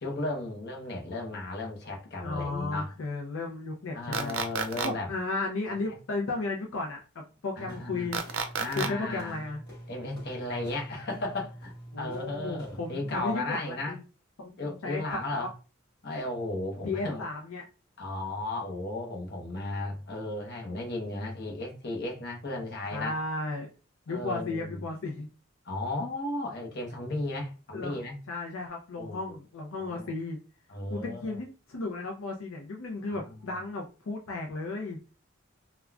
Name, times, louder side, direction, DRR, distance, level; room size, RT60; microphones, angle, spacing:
voice 1, 0.0-2.9 3.9-5.1 5.7-5.9 7.6-8.1 8.6-9.4 9.9-14.0 14.6-15.5 16.0-17.2 18.0-23.2 24.1-24.8 25.6-28.2 29.0-29.4 29.8-30.1 30.7-31.4 33.1-33.6, left 2 dB, 50° left, 0.8 m, -35 dB
voice 2, 2.2-4.3 4.8-8.2 8.7-9.6 11.9-14.0 14.4-15.5 16.8-17.6 22.9-23.7 24.1-25.3 27.7-30.4 30.9-35.0, left 3 dB, 85° left, 0.5 m, -34 dB
sound 1, 4.1-4.9 8.1-8.9, right 6 dB, 75° right, 0.4 m, -30 dB
sound 2, 7.7-13.5, equal, 20° left, 1.4 m, -46 dB
3.6 x 2.2 x 2.3 m
head